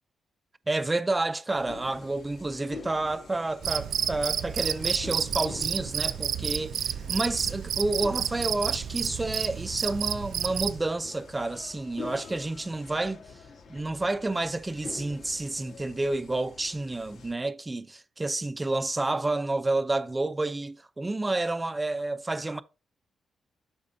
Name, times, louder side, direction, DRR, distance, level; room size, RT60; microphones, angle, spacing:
voice 1, 0.7-13.2 13.7-22.6, right 2 dB, 15° right, 0.4 m, -30 dB
sound 1, 1.5-17.3, left 4 dB, 70° left, 1.4 m, -47 dB
Cricket, 3.6-10.8, right 9 dB, 80° right, 0.4 m, -30 dB
12.5 x 4.3 x 2.6 m
cardioid pair, 115°, 0 cm